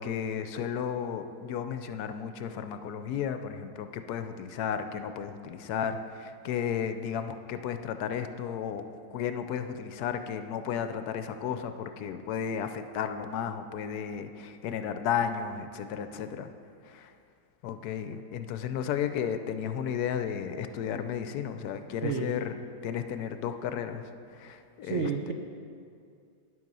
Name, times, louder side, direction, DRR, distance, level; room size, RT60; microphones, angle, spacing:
voice 1, 0.0-16.5 16.8-17.1 17.6-22.5 22.8-25.3, left 8 dB, 70° left, 9 dB, 1.0 m, -33 dB
voice 2, 22.0-22.3 24.8-25.3, right 6 dB, 75° right, 3 dB, 0.6 m, -30 dB
10.0 x 7.7 x 5.4 m, 2.3 s
omnidirectional pair, 2.0 m